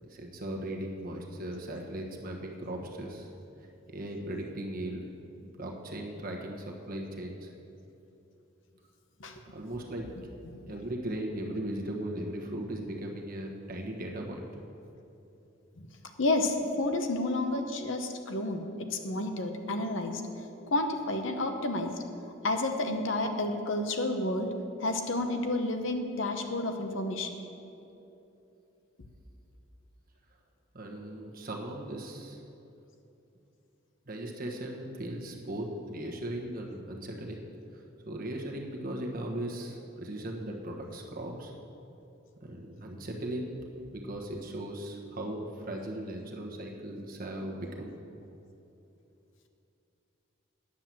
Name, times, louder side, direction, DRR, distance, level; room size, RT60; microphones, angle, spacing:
voice 1, 0.1-3.3 3.9-5.1 5.4-7.5 9.5-10.1 10.7-14.4 30.7-32.4 34.1-37.4 37.7-41.5 42.4-43.6 43.9-47.9, right 1 dB, 45° right, 0 dB, 1.3 m, -38 dB
voice 2, 16.2-20.2 20.7-21.9 22.4-24.5 24.8-27.3, left 2 dB, 60° left, 5 dB, 0.9 m, -30 dB
9.9 x 7.6 x 7.5 m, 2.9 s
head